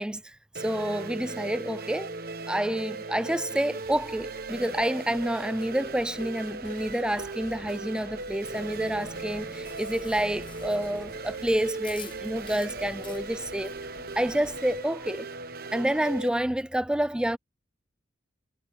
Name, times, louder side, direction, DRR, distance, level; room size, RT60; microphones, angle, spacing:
voice 1, 0.0-2.2 2.5-13.8 14.2-15.3 15.7-17.4, right 1 dB, 5° right, 0.3 m, -29 dB
sound 1, 0.5-16.3, right 3 dB, 50° right, 1.1 m, -38 dB
sound 2, 3.8-12.1, left 2 dB, 85° left, 5.9 m, -55 dB
Chewing mastication, 9.0-14.8, left 4 dB, 25° left, 0.8 m, -48 dB
head